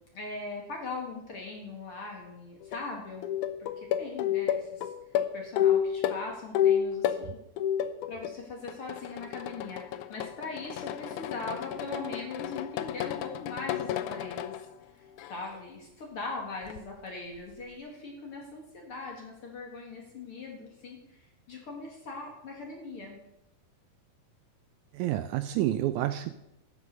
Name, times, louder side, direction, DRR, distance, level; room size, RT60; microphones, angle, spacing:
voice 1, 0.1-4.9 5.3-7.4 8.1-14.5 15.0-23.2, left 3 dB, 45° left, 0 dB, 2.2 m, -40 dB
sound 1, 2.6-2.8 3.2-7.2 7.6-8.4 8.7-14.6 15.2-15.6 16.7-16.8, left 10 dB, 75° left, 1.9 m, -30 dB
voice 2, 24.9-26.3, right 13 dB, 85° right, 11 dB, 1.7 m, -29 dB
11.5 x 7.5 x 6.5 m, 0.84 s
omnidirectional pair, 4.0 m